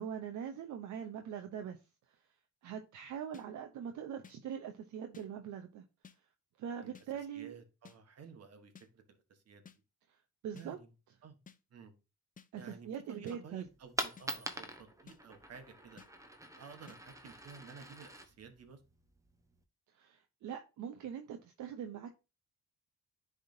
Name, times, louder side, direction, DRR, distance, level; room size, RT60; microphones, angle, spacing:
voice 1, 0.0-1.8 2.6-5.8 6.6-7.6 10.4-10.8 12.5-13.6 19.9-22.1, right 8 dB, 70° right, 0.8 m, -42 dB
sound 1, 3.3-3.5 4.2-4.4 5.1-5.3 6.0-6.2 6.9-7.1 7.9-8.0 8.8-8.9 9.7-9.8 10.6-10.7 11.5-11.6 12.4-12.5 13.3-13.4 14.2-14.3 15.1-15.2 16.0-16.1 16.9-17.0, left 6 dB, 25° left, 0.6 m, -55 dB
voice 2, 7.3-9.6 10.5-10.9 11.2-11.4 11.7-11.9 12.6-16.0 16.6-18.8, right 6 dB, 55° right, 1.4 m, -53 dB
Coin (dropping), 13.6-19.6, right 1 dB, 10° right, 1.0 m, -45 dB
10.5 x 3.6 x 2.7 m
cardioid pair, 90°, 30 cm